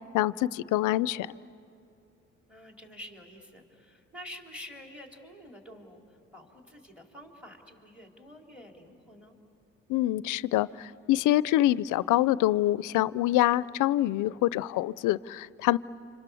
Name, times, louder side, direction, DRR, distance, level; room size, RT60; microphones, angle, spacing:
voice 1, 0.1-1.4 9.9-15.8, left 15 dB, 85° left, 19 dB, 0.5 m, -25 dB
voice 2, 2.5-9.4, left 1 dB, 5° right, 1 dB, 3.6 m, -48 dB
29.5 x 26.5 x 7.1 m, 2.8 s
cardioid pair, 90°, 30 cm